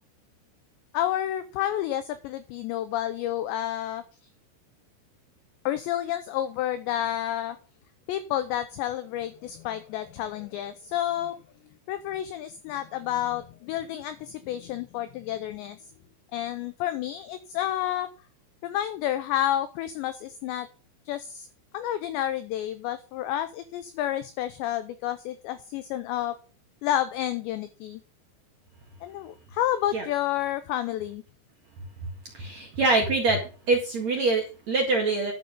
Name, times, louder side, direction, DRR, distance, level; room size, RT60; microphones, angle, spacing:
voice 1, 0.9-4.0 5.7-7.6 8.1-11.4 11.9-15.8 16.3-18.1 18.6-20.7 21.1-21.5 21.7-26.4 26.8-28.0 29.0-31.2, left 12 dB, 85° left, 11 dB, 2.5 m, -30 dB
voice 2, 32.3-33.4 33.7-35.3, right 3 dB, 50° right, 0 dB, 2.1 m, -24 dB
11.0 x 7.8 x 5.3 m, 0.35 s
omnidirectional pair, 6.0 m